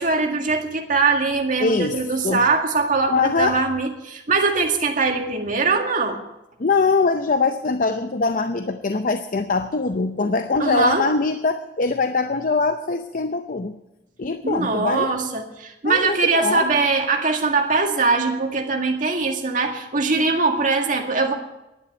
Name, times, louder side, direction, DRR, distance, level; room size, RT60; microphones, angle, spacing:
voice 1, 0.0-6.2 10.6-11.0 14.4-21.3, right 4 dB, 50° right, 2 dB, 2.0 m, -21 dB
voice 2, 1.6-2.4 3.1-3.6 6.6-13.8 14.2-15.1 15.8-16.6, left 4 dB, 50° left, 8 dB, 0.6 m, -22 dB
11.0 x 9.7 x 9.2 m, 0.94 s
head